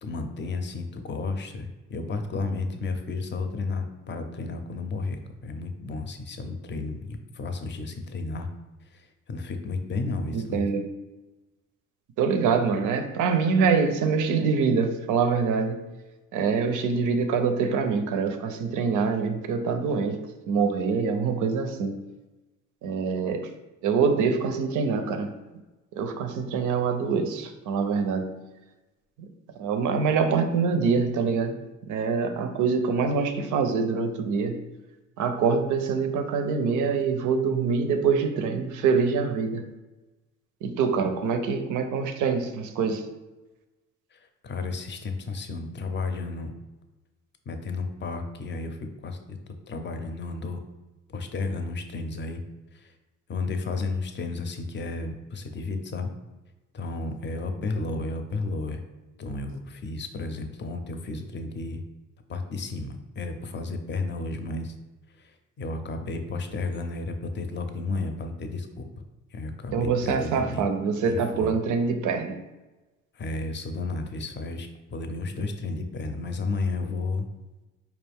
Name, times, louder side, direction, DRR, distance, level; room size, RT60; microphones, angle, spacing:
voice 1, 0.0-8.5 8.9-10.7 44.1-46.5 47.5-49.4 49.7-50.6 51.1-52.4 52.7-52.9 53.3-56.1 56.7-58.8 59.2-61.8 62.3-64.7 65.2-68.9 69.3-70.7 71.1-71.5 73.1-77.3, left 3 dB, 35° left, 6 dB, 0.5 m, -32 dB
voice 2, 10.3-10.8 12.2-15.8 16.3-22.0 22.8-23.5 23.8-25.4 25.9-28.4 29.6-31.6 31.9-34.6 35.2-39.6 40.6-43.1 69.7-72.4, right 5 dB, 80° right, 8 dB, 0.5 m, -25 dB
4.4 x 2.5 x 3.4 m, 1.1 s
cardioid pair, 90°, 30 cm